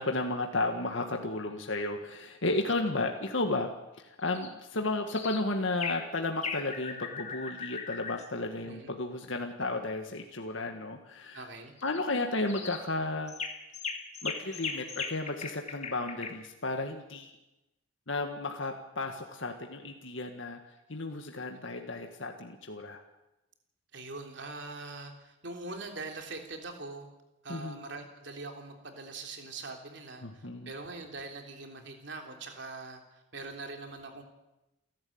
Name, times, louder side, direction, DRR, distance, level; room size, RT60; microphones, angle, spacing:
voice 1, 0.0-3.7 4.0-11.5 11.8-13.3 14.2-17.3 18.1-20.6 20.9-23.0 27.5-27.8 30.2-30.7, left 2 dB, 65° left, 4 dB, 1.9 m, -33 dB
sound 1, 4.3-4.5 5.1-5.4 5.8-6.1 6.4-8.2 11.8-12.0 12.5-12.8 13.3-16.3, left 5 dB, 35° left, 2.0 m, -38 dB
voice 2, 8.6-8.9 11.3-11.8 23.9-27.1 27.4-33.0 33.3-34.2, right 3 dB, 55° right, 3 dB, 3.5 m, -42 dB
29.0 x 12.0 x 8.8 m, 0.97 s
head